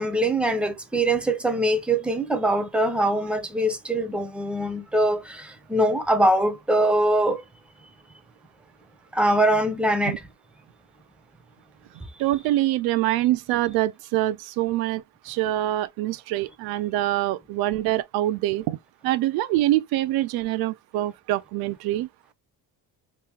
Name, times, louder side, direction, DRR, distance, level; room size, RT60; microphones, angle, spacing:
voice 1, 0.0-7.4 9.1-10.2, right 1 dB, 5° right, 0.7 m, -23 dB
voice 2, 12.2-18.8 19.0-22.1, right 15 dB, 80° right, 0.5 m, -25 dB
3.0 x 2.7 x 3.5 m
cardioid pair, 120°, 36 cm